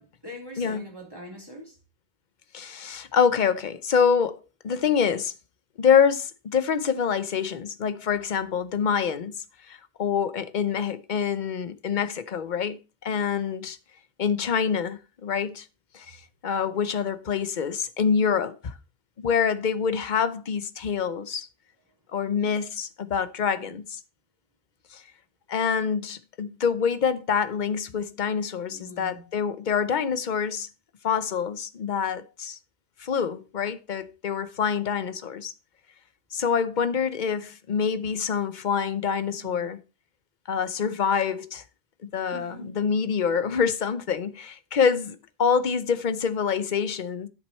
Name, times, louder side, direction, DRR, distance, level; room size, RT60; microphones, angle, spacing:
voice 1, 0.0-1.8 23.6-23.7 28.7-29.2 39.3-39.7 42.3-42.8, equal, 20° right, 3.7 m, -43 dB
voice 2, 0.6-0.9 2.5-5.3 5.8-9.3 9.7-13.8 14.2-15.7 15.9-18.7 19.2-21.5 22.1-24.0 24.9-25.0 25.5-30.7 31.0-32.6 33.0-35.5 36.3-39.8 40.5-41.6 42.1-47.3, left 6 dB, 50° left, 0.9 m, -26 dB
11.0 x 6.6 x 4.3 m
omnidirectional pair, 1.0 m